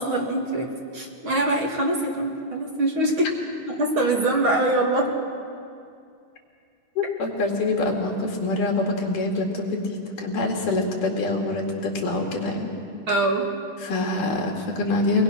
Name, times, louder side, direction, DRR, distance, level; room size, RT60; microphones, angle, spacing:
voice 1, 0.0-3.3 3.6-5.1 13.1-13.5, right 1 dB, 45° right, 0 dB, 2.5 m, -23 dB
voice 2, 7.0-12.7 13.8-15.2, left 2 dB, 75° left, 1 dB, 4.0 m, -25 dB
24.0 x 21.0 x 6.0 m, 2.4 s
omnidirectional pair, 3.7 m